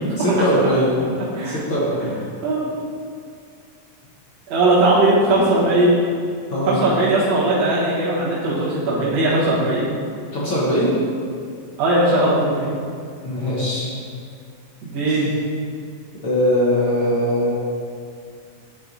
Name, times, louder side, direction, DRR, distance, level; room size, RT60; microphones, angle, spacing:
voice 1, 0.2-0.9 1.4-2.1 6.5-6.9 10.3-10.9 13.2-13.9 15.1-15.2 16.2-17.5, equal, 55° left, -7 dB, 1.5 m, -20 dB
voice 2, 4.5-6.0 6.7-9.8 11.8-12.7 14.8-15.3, right 2 dB, 60° right, -8 dB, 2.6 m, -18 dB
9.5 x 4.3 x 3.9 m, 2.2 s
omnidirectional pair, 3.5 m